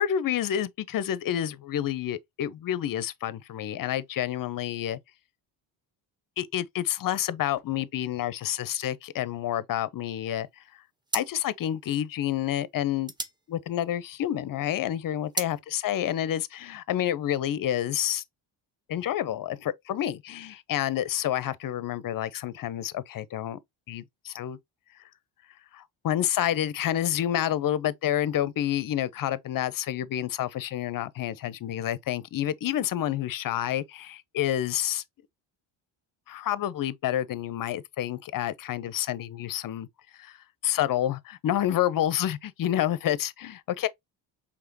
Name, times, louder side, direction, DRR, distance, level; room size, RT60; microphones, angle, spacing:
voice 1, 0.0-5.0 6.4-10.5 11.1-13.1 13.5-18.2 18.9-23.6 23.9-24.6 25.7-35.0 36.3-39.9 40.2-40.4 40.6-43.9, left 11 dB, 45° left, 0.6 m, -29 dB
sound 1, 10.4-10.6 11.0-14.4 14.8-15.6, right 1 dB, 10° right, 0.8 m, -36 dB
4.9 x 3.5 x 2.6 m
supercardioid pair, 65°, 50 cm